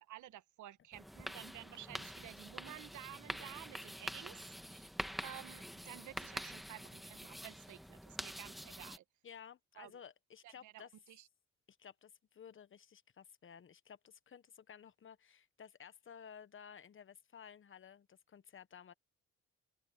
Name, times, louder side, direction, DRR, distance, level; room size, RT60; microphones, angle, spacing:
voice 1, 0.0-4.9 5.2-9.0 9.8-9.9 10.4-11.3, right 13 dB, 80° right, 1.3 m, -53 dB
sound 1, 0.9-9.0, equal, ahead, 1.4 m, -46 dB
voice 2, 9.2-10.9 11.7-18.9, left 7 dB, 40° left, 1.2 m, -55 dB
open air
cardioid pair, 90°, 30 cm